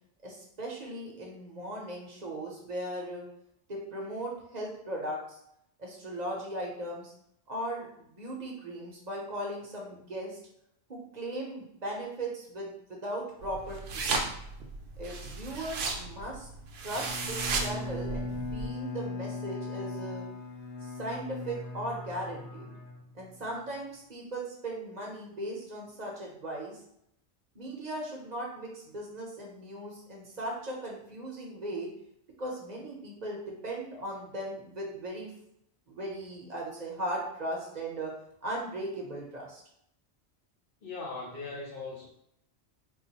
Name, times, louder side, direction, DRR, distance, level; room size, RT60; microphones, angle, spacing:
voice 1, 0.2-3.3 3.7-5.4 5.8-7.1 7.5-10.4 10.9-14.2 15.0-16.5 16.8-20.2 20.8-22.7 23.1-26.8 27.5-31.9 32.4-35.3 35.9-38.1 38.4-39.6, right 1 dB, 40° right, -2 dB, 0.9 m, -38 dB
sound 1, 13.4-18.7, right 4 dB, 70° right, 0.8 m, -35 dB
Bowed string instrument, 16.9-23.5, left 3 dB, 90° left, 1.0 m, -39 dB
voice 2, 40.8-42.1, left 3 dB, 55° left, -3 dB, 1.1 m, -39 dB
3.9 x 2.5 x 2.8 m, 0.74 s
omnidirectional pair, 1.1 m